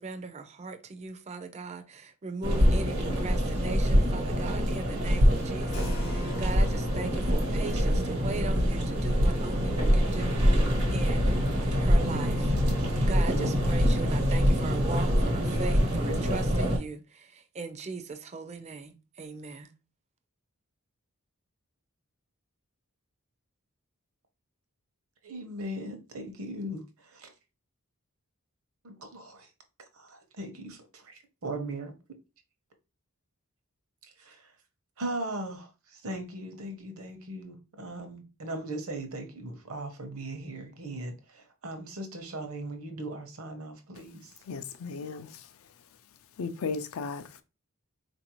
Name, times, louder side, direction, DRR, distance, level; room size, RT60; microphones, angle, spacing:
voice 1, 0.0-12.5 13.0-19.7, right 3 dB, 30° right, 0.4 m, -39 dB
sound 1, 2.4-16.8, equal, 80° right, 1.2 m, -25 dB
Keyboard (musical), 5.7-11.3, left 2 dB, 80° left, 0.8 m, -48 dB
voice 2, 25.2-27.3 28.8-29.5 29.9-31.9 34.2-34.5 35.0-44.3, right 1 dB, 65° right, 0.8 m, -39 dB
voice 3, 44.5-45.4 46.4-47.4, left 4 dB, 65° left, 0.4 m, -35 dB
4.0 x 2.6 x 2.9 m
head